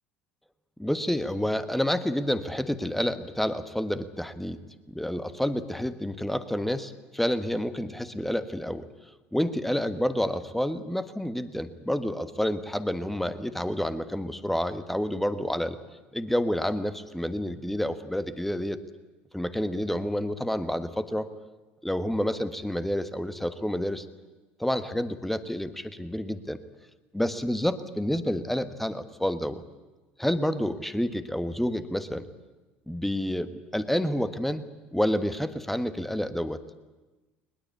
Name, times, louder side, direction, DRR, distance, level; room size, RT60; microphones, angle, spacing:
voice 1, 0.8-4.6 4.9-8.8 9.3-15.8 16.1-18.8 19.3-21.3 21.8-24.0 24.6-26.6 27.1-29.6 30.2-32.2 32.9-34.6 34.9-36.6, equal, 5° left, 12 dB, 1.4 m, -29 dB
20.5 x 20.5 x 8.5 m, 1.2 s
figure-of-eight pair, 65°, 6 cm